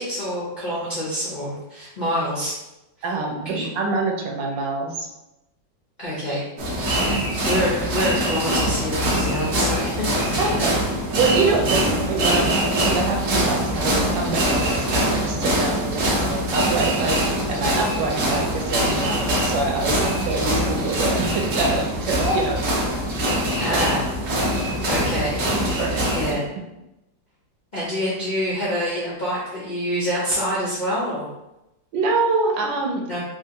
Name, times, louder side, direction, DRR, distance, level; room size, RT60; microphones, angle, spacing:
voice 1, 0.0-2.5 3.4-3.7 6.0-6.4 7.0-7.2 7.4-10.8 11.5-11.7 23.6-24.1 24.9-25.4 25.7-26.4 27.7-31.3 33.1-33.2, equal, 85° left, -7 dB, 0.4 m, -26 dB
voice 2, 3.0-5.1 7.0-7.2 10.4-10.8 11.2-22.7 23.3-23.9 24.4-24.6 25.8-26.4 31.9-33.0, right 3 dB, 80° right, 1 dB, 1.3 m, -25 dB
sound 1, 6.6-26.3, right 1 dB, 55° right, 0.9 m, -23 dB
3.3 x 2.4 x 2.8 m, 0.92 s
omnidirectional pair, 2.0 m